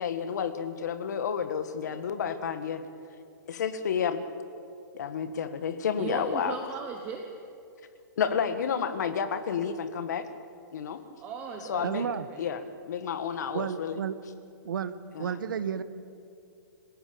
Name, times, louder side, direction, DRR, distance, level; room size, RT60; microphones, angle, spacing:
voice 1, 0.0-2.8 3.5-4.3 4.9-6.6 8.2-10.2 10.7-11.0 11.7-12.0 12.4-14.0 15.1-15.3, left 7 dB, 55° left, 9 dB, 1.8 m, -30 dB
voice 2, 6.0-7.3 11.2-12.4, right 6 dB, 15° right, 3 dB, 1.2 m, -37 dB
voice 3, 11.8-12.3 13.5-14.1 14.6-14.9 15.2-15.8, right 7 dB, 80° right, 12 dB, 1.5 m, -31 dB
26.5 x 17.0 x 8.8 m, 2.5 s
hypercardioid pair, 175°, 11 cm